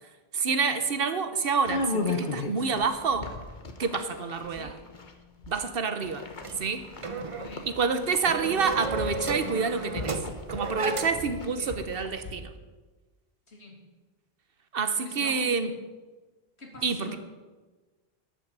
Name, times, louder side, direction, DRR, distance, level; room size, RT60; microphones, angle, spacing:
voice 1, 0.3-3.3 3.8-4.7 5.5-6.3 6.6-6.9 7.7-10.1 10.5-12.5 14.7-15.7 16.8-17.2, right 5 dB, 60° right, 9 dB, 1.1 m, -28 dB
sound 1, 1.6-5.7 6.0-12.3, left 3 dB, 50° left, 1.2 m, -36 dB
sound 2, 6.4-11.4, right 3 dB, 35° right, 0.8 m, -34 dB
voice 2, 7.3-7.7 11.4-11.7 13.5-13.9 15.0-15.4 16.6-17.2, left 1 dB, 90° left, -1 dB, 2.8 m, -45 dB
12.0 x 6.1 x 8.1 m, 1.3 s
omnidirectional pair, 1.1 m